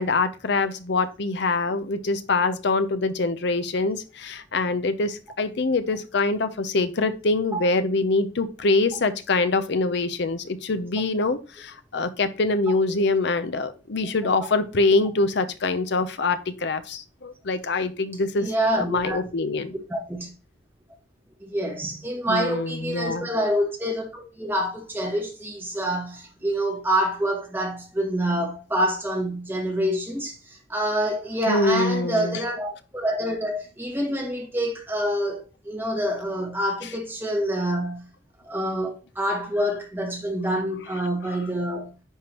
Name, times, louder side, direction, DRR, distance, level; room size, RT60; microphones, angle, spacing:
voice 1, 0.0-18.5 18.7-19.7 22.3-23.3 31.5-32.4, left 3 dB, 60° left, 0.7 m, -24 dB
voice 2, 18.4-19.2 19.9-20.3 21.4-38.0 38.4-41.9, equal, 10° right, 1.6 m, -27 dB
10.0 x 3.7 x 2.9 m
head